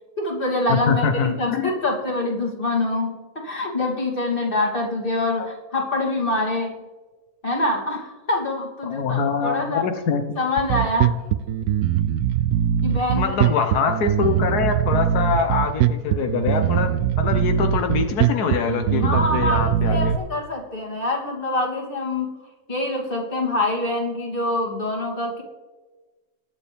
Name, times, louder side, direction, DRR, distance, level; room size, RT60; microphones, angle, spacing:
voice 1, 0.2-6.8 7.4-9.9 10.4-11.2 12.8-13.3 19.0-22.3 22.7-25.4, left 2 dB, 35° left, -1 dB, 3.0 m, -25 dB
voice 2, 0.7-1.7 8.8-10.2 13.2-16.9 17.2-20.1, left 5 dB, 90° left, 6 dB, 1.5 m, -24 dB
Bass guitar, 10.6-20.2, right 10 dB, 80° right, 1.0 m, -21 dB
21.5 x 7.5 x 3.5 m, 1.3 s
omnidirectional pair, 1.6 m